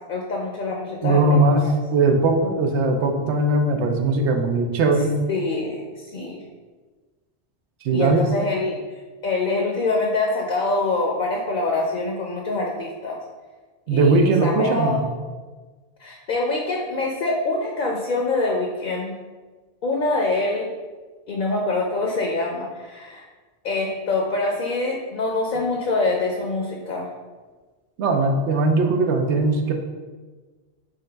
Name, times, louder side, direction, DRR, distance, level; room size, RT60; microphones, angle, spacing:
voice 1, 0.1-1.7 5.3-6.4 7.9-8.8 9.2-13.2 13.9-15.0 16.0-19.1 19.8-20.7 21.3-23.2 23.6-27.1, left 2 dB, 55° left, 0 dB, 0.6 m, -25 dB
voice 2, 1.0-1.6 1.9-5.2 7.8-8.2 13.9-15.0 28.0-29.7, right 3 dB, 90° right, 4 dB, 0.9 m, -19 dB
4.0 x 3.7 x 3.3 m, 1.3 s
omnidirectional pair, 1.1 m